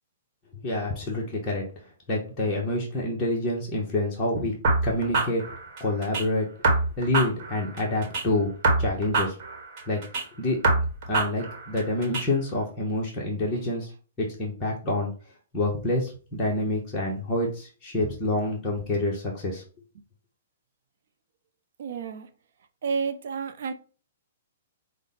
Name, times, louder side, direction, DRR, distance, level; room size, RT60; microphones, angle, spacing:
voice 1, 0.6-1.6 2.1-4.5 4.8-5.4 5.8-6.5 7.0-8.5 8.8-9.4 9.9-10.0 10.4-13.9 14.2-15.1 15.5-19.6, left 2 dB, 15° left, 1.0 m, -27 dB
sound 1, 4.6-6.2 6.6-8.2 8.6-10.2 10.6-12.2, right 3 dB, 40° right, 1.2 m, -25 dB
voice 2, 21.8-22.3 22.8-23.7, right 5 dB, 60° right, 0.6 m, -30 dB
5.0 x 2.2 x 3.9 m
hypercardioid pair, 160°, 0 cm